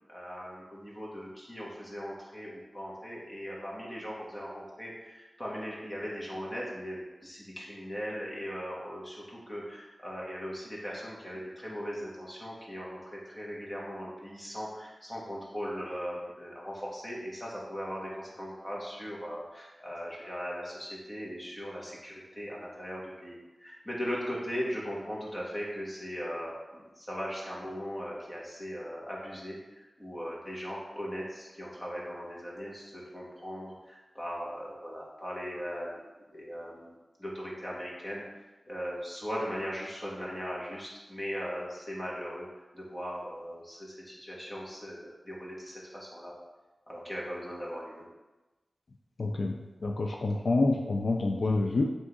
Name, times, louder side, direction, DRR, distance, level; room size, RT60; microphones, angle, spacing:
voice 1, 0.1-38.2 38.7-42.5 42.7-46.3 46.9-48.0, equal, 20° left, -5 dB, 1.4 m, -39 dB
voice 2, 49.2-51.8, left 2 dB, 80° left, 1 dB, 0.3 m, -28 dB
3.5 x 2.7 x 4.6 m, 1.1 s
wide cardioid pair, 60°, 0 cm